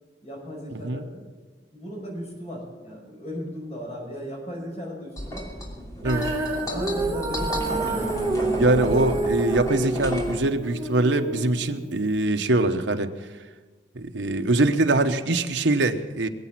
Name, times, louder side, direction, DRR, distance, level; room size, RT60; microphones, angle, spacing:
voice 1, 0.2-1.2 1.7-6.1 6.5-8.6, equal, 35° left, -1 dB, 5.6 m, -37 dB
sound 1, 5.2-10.4, equal, 20° left, 2.9 m, -31 dB
Female singing, 6.0-12.3, right 2 dB, 15° right, 1.6 m, -29 dB
voice 2, 8.6-13.1 13.9-16.3, right 2 dB, 75° right, 6 dB, 1.0 m, -23 dB
21.0 x 8.3 x 7.5 m, 1.4 s
head